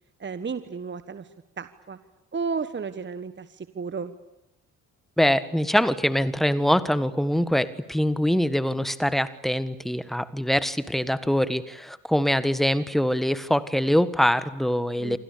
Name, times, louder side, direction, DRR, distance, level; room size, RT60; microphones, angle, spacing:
voice 1, 0.2-1.3 1.6-2.0 2.3-4.1 15.0-15.2, right 5 dB, 25° right, 12 dB, 1.4 m, -33 dB
voice 2, 5.2-15.2, equal, ahead, 14 dB, 1.5 m, -23 dB
28.5 x 25.0 x 6.9 m, 0.93 s
figure-of-eight pair, 45°, 44 cm